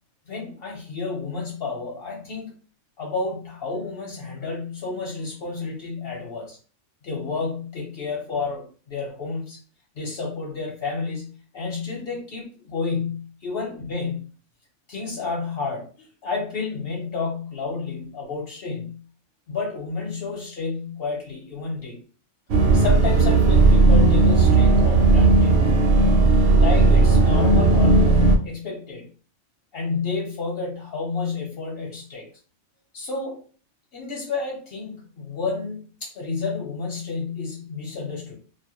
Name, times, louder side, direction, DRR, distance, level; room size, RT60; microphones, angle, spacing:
voice 1, 0.3-2.5 3.0-6.6 7.0-9.6 10.0-14.2 14.9-19.0 19.5-22.0 22.7-25.6 26.6-29.1 29.7-32.3 32.9-33.4 33.9-38.4, left 4 dB, 60° left, -1 dB, 0.8 m, -30 dB
sound 1, 22.5-28.4, right 3 dB, 65° right, 0.8 m, -16 dB
2.3 x 2.1 x 2.9 m, 0.39 s
omnidirectional pair, 1.3 m